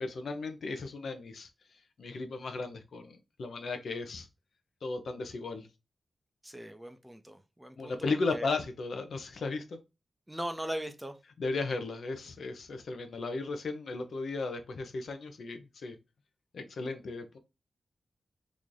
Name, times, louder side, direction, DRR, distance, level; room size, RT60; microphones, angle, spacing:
voice 1, 0.0-1.5 2.0-4.3 4.8-5.7 7.8-9.8 11.4-16.0 16.5-17.4, left 3 dB, 70° left, 0.6 m, -35 dB
voice 2, 6.4-8.0 8.3-8.5 10.3-11.2, right 1 dB, 5° right, 0.4 m, -39 dB
3.1 x 2.6 x 3.7 m
wide cardioid pair, 135°, 0 cm